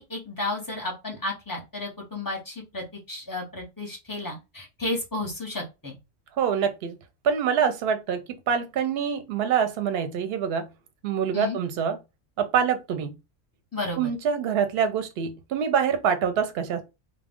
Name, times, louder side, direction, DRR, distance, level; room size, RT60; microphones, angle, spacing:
voice 1, 0.0-6.0 11.3-11.6 13.7-14.1, left 2 dB, 20° left, 0.6 m, -33 dB
voice 2, 6.4-7.0 7.2-8.2 8.5-10.7 11.0-12.0 12.4-13.2 14.0-16.8, right 7 dB, 60° right, 0.7 m, -25 dB
2.3 x 2.1 x 3.4 m
omnidirectional pair, 1.3 m